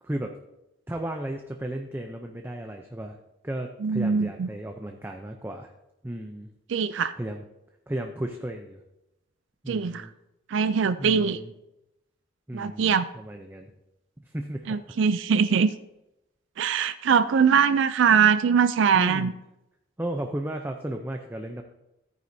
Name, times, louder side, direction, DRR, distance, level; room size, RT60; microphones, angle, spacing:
voice 1, 0.9-3.2 3.4-5.7 6.0-6.5 7.2-7.4 7.9-8.8 9.6-10.1 11.0-11.5 12.5-13.7 14.2-15.0 18.9-19.3 20.0-21.6, right 1 dB, 10° right, 3 dB, 0.5 m, -34 dB
voice 2, 3.8-4.5 6.7-7.1 9.7-10.1 10.5-11.4 12.5-13.1 14.7-15.7 16.6-19.3, right 6 dB, 75° right, 12 dB, 0.4 m, -22 dB
13.5 x 9.4 x 2.7 m, 0.92 s
head